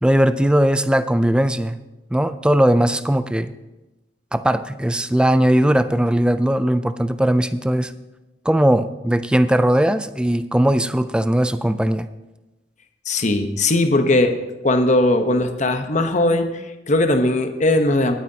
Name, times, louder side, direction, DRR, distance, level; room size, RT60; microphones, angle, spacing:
voice 1, 0.0-1.8 2.1-3.5 4.3-7.9 8.5-12.1, right 1 dB, 5° right, 12 dB, 0.3 m, -18 dB
voice 2, 13.1-14.4 14.6-18.1, left 2 dB, 40° left, 7 dB, 0.9 m, -19 dB
19.5 x 9.1 x 2.8 m, 1.1 s
head